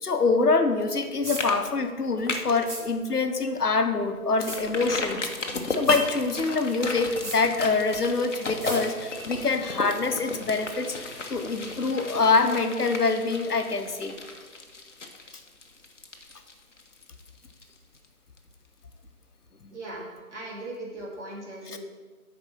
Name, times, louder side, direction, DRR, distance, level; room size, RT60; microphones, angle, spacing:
voice 1, 0.0-11.0 11.3-14.2 21.6-21.8, left 4 dB, 85° left, 7 dB, 1.1 m, -25 dB
sound 1, 0.8-1.0 1.4-1.6 1.9-2.7 3.1-3.2 3.6-3.7 4.5-18.1 18.4-18.5, left 3 dB, 50° left, 1.0 m, -35 dB
sound 2, 1.2-1.4 2.7-2.8 4.4-4.6 5.9-6.0 7.2-7.4 8.6-8.8, right 2 dB, 90° right, 2.0 m, -35 dB
voice 2, 19.7-20.0 20.3-21.8, right 2 dB, 50° right, -4 dB, 2.7 m, -38 dB
8.1 x 4.8 x 6.2 m, 1.4 s
figure-of-eight pair, 160°, 45 cm